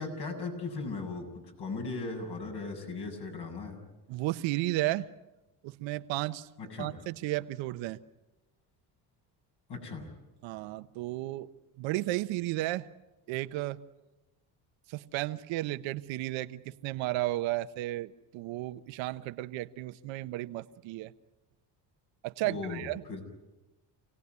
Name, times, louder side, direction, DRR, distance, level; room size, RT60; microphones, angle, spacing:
voice 1, 0.0-3.8 6.6-6.9 9.7-10.1 22.4-23.2, left 3 dB, 60° left, 2 dB, 7.8 m, -37 dB
voice 2, 4.1-5.1 5.6-6.5 6.8-8.0 10.4-11.5 11.8-12.9 13.3-13.8 14.9-21.1 22.2-23.0, right 17 dB, 80° right, 12 dB, 1.1 m, -33 dB
28.0 x 18.0 x 9.6 m, 1.0 s
cardioid pair, 95°, 44 cm